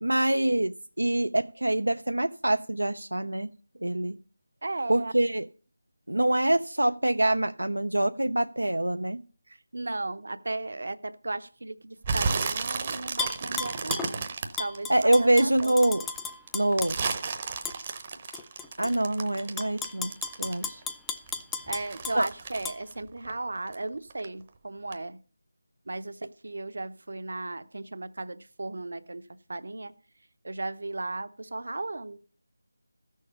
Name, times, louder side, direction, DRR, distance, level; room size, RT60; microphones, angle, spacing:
voice 1, 0.0-3.5 3.8-4.2 4.9-5.5 6.1-9.2 14.9-16.1 16.5-17.0 18.8-20.8 22.2-22.3, right 1 dB, 85° right, 0.4 m, -25 dB
voice 2, 4.6-5.1 9.7-14.2 14.6-15.7 21.7-25.2 25.9-29.2 29.5-29.9 30.4-32.2, right 2 dB, 60° right, 0.8 m, -35 dB
sound 1, 12.0-15.6 16.1-20.8 21.1-23.8 24.1-24.5 24.9-25.0, right 5 dB, 30° right, 0.8 m, -33 dB
Tap / Glass, 13.2-14.1 14.6-17.2 17.6-17.8 18.3-18.9 19.4-22.2 22.6-22.8, left 5 dB, 5° left, 0.4 m, -34 dB
14.0 x 6.5 x 5.5 m
figure-of-eight pair, 165°, 0 cm